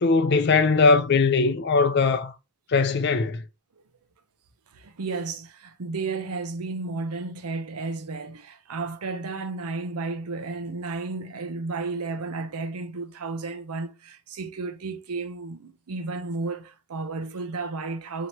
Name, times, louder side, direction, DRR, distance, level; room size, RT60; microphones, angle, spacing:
voice 1, 0.0-2.3 2.7-3.4, left 4 dB, 50° left, 0.4 m, -20 dB
voice 2, 4.7-18.3, right 3 dB, 85° right, 0.7 m, -33 dB
4.3 x 2.9 x 3.0 m
head